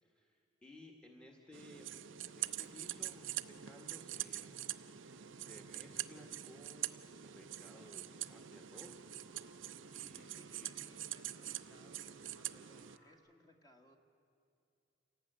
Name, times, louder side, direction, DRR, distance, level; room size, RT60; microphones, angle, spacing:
voice 1, 0.0-9.1 9.9-10.3 10.6-10.7, left 1 dB, 5° left, 2 dB, 1.7 m, -58 dB
sound 1, 1.5-13.0, right 13 dB, 85° right, 0.6 m, -45 dB
sound 2, 2.2-13.1, equal, 45° left, 7.1 m, -66 dB
voice 2, 10.3-14.0, left 1 dB, 20° left, 3 dB, 2.1 m, -65 dB
28.0 x 18.0 x 9.0 m, 2.6 s
head